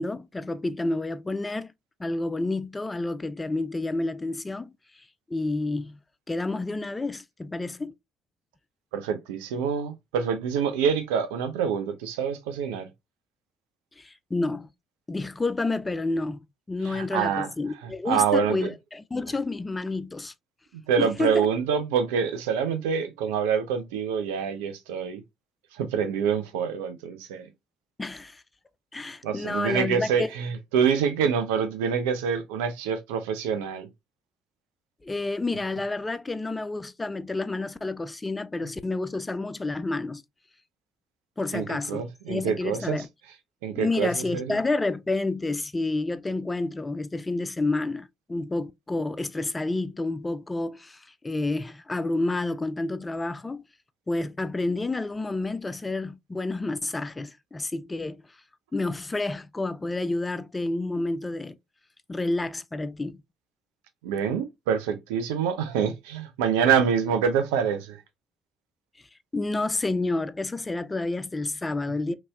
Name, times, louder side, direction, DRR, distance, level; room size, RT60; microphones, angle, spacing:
voice 1, 0.0-1.7 2.0-4.7 5.3-6.0 6.3-7.9 14.0-14.7 15.1-16.4 16.7-20.3 21.0-21.5 28.0-28.4 28.9-30.3 35.0-40.2 41.4-43.1 43.8-53.6 54.1-58.2 58.7-61.6 62.1-63.2 69.3-72.1, left 2 dB, 20° left, 0.3 m, -29 dB
voice 2, 8.9-12.9 16.9-17.5 17.8-18.7 20.7-25.2 25.7-27.5 29.2-33.9 41.5-43.0 43.6-44.6 64.0-68.0, right 7 dB, 75° right, 0.4 m, -26 dB
2.9 x 2.7 x 2.3 m
hypercardioid pair, 45°, 0 cm